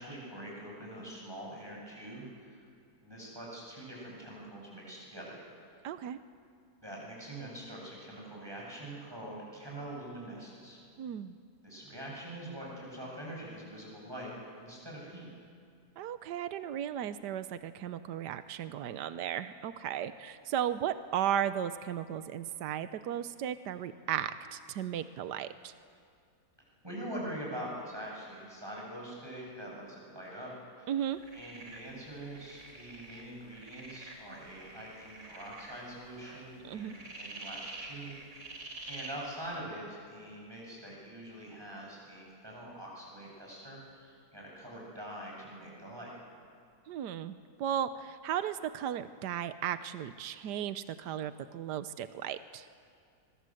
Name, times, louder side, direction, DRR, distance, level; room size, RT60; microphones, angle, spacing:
voice 1, 0.0-2.6 3.0-5.4 6.8-10.8 11.6-15.3 26.6-30.5 30.8-30.9 31.3-38.6 38.8-46.1, right 1 dB, 15° right, -3 dB, 8.2 m, -44 dB
voice 2, 5.8-6.2 11.0-11.4 16.0-25.7 30.9-31.2 36.6-36.9 46.9-52.7, right 10 dB, 80° right, 12 dB, 1.4 m, -35 dB
sound 1, 31.1-39.6, right 2 dB, 50° right, 3.7 m, -48 dB
26.0 x 24.5 x 7.9 m, 2.3 s
omnidirectional pair, 1.8 m